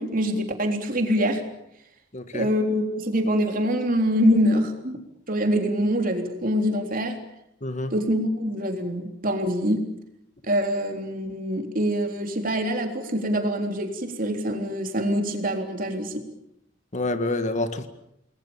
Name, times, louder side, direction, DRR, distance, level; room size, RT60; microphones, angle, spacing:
voice 1, 0.0-1.4 2.3-5.0 5.3-7.2 7.9-9.9 10.5-16.3, equal, 50° right, 4 dB, 3.7 m, -24 dB
voice 2, 2.1-2.5 7.6-7.9 16.9-17.9, left 2 dB, 40° left, 9 dB, 1.8 m, -27 dB
29.5 x 21.0 x 7.2 m, 0.79 s
head